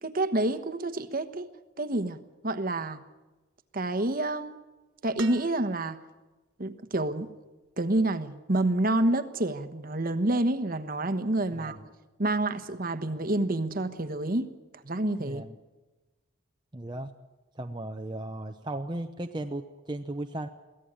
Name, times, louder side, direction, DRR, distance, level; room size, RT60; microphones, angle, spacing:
voice 1, 0.0-1.5 1.8-3.0 3.7-4.6 5.0-6.0 6.6-7.3 7.8-11.8 12.2-14.5 14.8-15.4, right 2 dB, 40° right, 9 dB, 1.2 m, -28 dB
sound 1, 5.2-6.2 7.7-7.8, right 7 dB, 60° right, 1.1 m, -44 dB
voice 2, 11.5-11.9 15.2-15.6 16.7-17.1 17.6-20.5, right 1 dB, 20° right, 4 dB, 0.8 m, -36 dB
23.5 x 16.5 x 8.8 m, 1.2 s
head